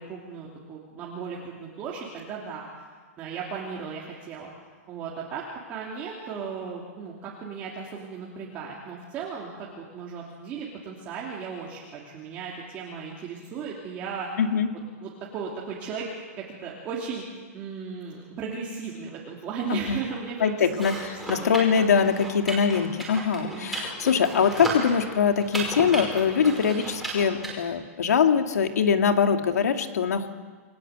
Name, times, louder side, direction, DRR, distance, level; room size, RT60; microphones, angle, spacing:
voice 1, 0.0-4.5 4.9-14.3 15.0-17.2 17.5-21.6 23.4-23.7, right 5 dB, 20° right, -4 dB, 3.0 m, -36 dB
voice 2, 14.4-14.7 19.7-20.0 20.4-30.3, left 6 dB, 80° left, 6 dB, 2.3 m, -23 dB
sound 1, 20.7-27.5, right 2 dB, ahead, 5.3 m, -34 dB
29.5 x 20.5 x 8.3 m, 1.5 s
hypercardioid pair, 175°, 8 cm